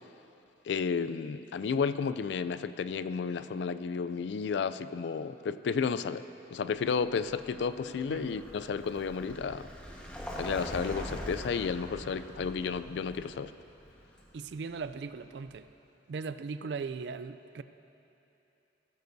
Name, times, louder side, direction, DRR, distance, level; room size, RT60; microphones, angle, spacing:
voice 1, 0.7-6.2 6.5-9.7 10.4-13.5, left 5 dB, 75° left, 13 dB, 0.3 m, -32 dB
Vehicle, 6.7-15.5, equal, 5° left, 1.3 m, -44 dB
voice 2, 7.9-8.4 14.3-15.7 16.1-17.6, right 4 dB, 70° right, 12 dB, 0.4 m, -39 dB
16.0 x 13.5 x 2.7 m, 2.9 s
head